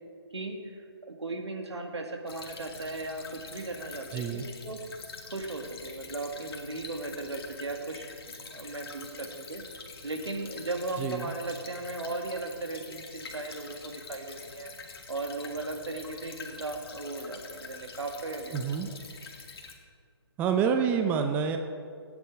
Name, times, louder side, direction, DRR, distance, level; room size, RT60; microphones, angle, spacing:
voice 1, 0.3-0.8 1.1-4.8 5.3-8.1 8.4-9.6 10.0-14.7 15.1-18.6, right 2 dB, 85° right, 3 dB, 2.1 m, -37 dB
Stream / Trickle dribble, 2.3-19.7, left 4 dB, 60° left, 2.1 m, -46 dB
voice 2, 4.1-4.5 11.0-11.3 18.5-18.9 20.4-21.6, right 7 dB, 10° right, 6 dB, 0.6 m, -27 dB
16.5 x 9.6 x 4.7 m, 2.1 s
hypercardioid pair, 150°, 14 cm